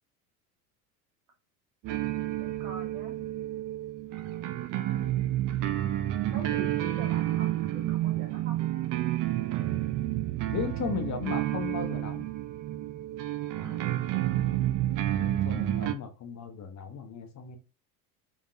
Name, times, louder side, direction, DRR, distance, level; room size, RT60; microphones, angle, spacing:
sound 1, 1.8-15.9, right 14 dB, 45° right, 0.6 m, -30 dB
voice 1, 1.9-3.2 6.3-8.6 13.5-13.9, right 3 dB, 75° right, 1.7 m, -45 dB
voice 2, 10.4-12.2 15.1-17.6, left 7 dB, 35° left, 1.0 m, -36 dB
3.6 x 3.5 x 2.7 m
hypercardioid pair, 80°, 46 cm